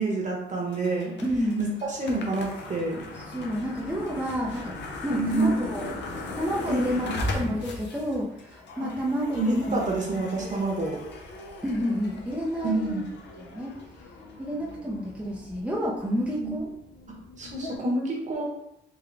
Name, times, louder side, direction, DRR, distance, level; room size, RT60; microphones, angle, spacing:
voice 1, 0.0-1.1 1.6-3.0 5.1-5.6 6.7-7.1 8.8-8.9 9.3-11.0 12.6-13.0 16.2-16.6 17.4-18.4, right 2 dB, 40° right, -2 dB, 1.2 m, -28 dB
sound 1, 0.7-17.8, left 2 dB, 65° left, 0.7 m, -39 dB
voice 2, 1.2-1.6 3.1-4.7 5.0-6.0 6.3-9.8 10.4-10.5 11.6-13.0 13.4-13.7 14.4-16.7, equal, 5° right, -5 dB, 0.6 m, -30 dB
3.7 x 2.3 x 3.4 m, 0.80 s
cardioid pair, 90°, 20 cm